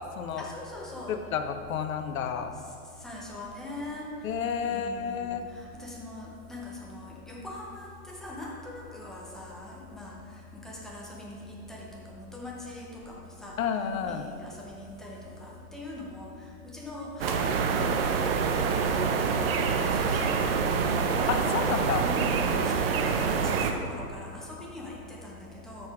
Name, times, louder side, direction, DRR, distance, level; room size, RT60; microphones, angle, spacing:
voice 1, 0.4-1.2 3.0-4.1 4.7-10.2 10.5-17.9 18.3-21.1 22.0-25.9, left 2 dB, ahead, -4 dB, 0.7 m, -42 dB
voice 2, 1.1-2.5 4.2-5.4 13.6-14.3 21.3-22.1, left 7 dB, 60° left, 7 dB, 0.9 m, -30 dB
sound 1, 17.2-23.7, right 5 dB, 40° right, 0.7 m, -26 dB
12.5 x 6.7 x 3.6 m, 2.5 s
hypercardioid pair, 140°, 46 cm